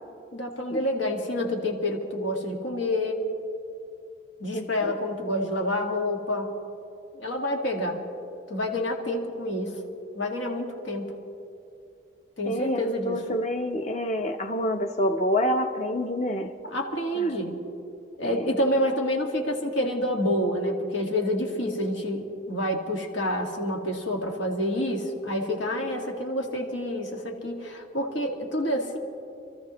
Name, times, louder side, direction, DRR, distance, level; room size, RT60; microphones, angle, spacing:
voice 1, 0.3-3.2 4.4-6.5 7.1-8.0 8.5-9.8 10.1-11.1 12.4-13.2 16.6-17.6 18.2-29.0, left 1 dB, 85° left, 1 dB, 1.8 m, -28 dB
voice 2, 4.5-4.9 12.5-16.5 17.1-17.3 18.2-18.5, left 1 dB, 35° left, 6 dB, 0.8 m, -27 dB
27.5 x 14.0 x 3.1 m, 2.6 s
head